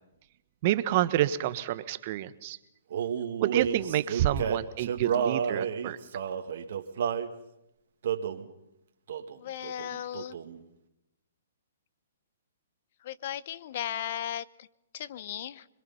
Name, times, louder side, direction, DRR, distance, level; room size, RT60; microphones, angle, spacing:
voice 1, 0.6-2.6 3.4-6.0, right 13 dB, 45° right, 13 dB, 1.2 m, -28 dB
Male singing, 2.9-7.3 8.0-8.5 9.1-9.4 9.6-10.6, right 7 dB, 60° right, 2.0 m, -31 dB
voice 2, 9.4-10.4 13.0-14.7 14.9-15.7, left 11 dB, 50° left, 18 dB, 0.9 m, -36 dB
26.5 x 22.0 x 5.7 m, 0.86 s
hypercardioid pair, 135°, 0 cm